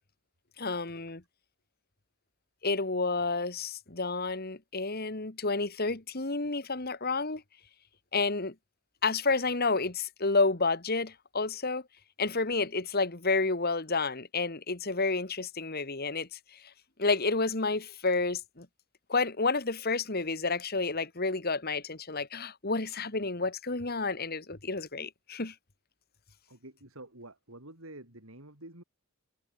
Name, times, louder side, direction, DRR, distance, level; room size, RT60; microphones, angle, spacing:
voice 1, 0.6-1.2 2.6-7.4 8.1-8.5 9.0-11.8 12.2-16.4 17.0-18.7 19.1-25.5, left 3 dB, 45° left, 1.8 m, -30 dB
voice 2, 26.5-28.8, right 1 dB, 65° right, 5.8 m, -48 dB
head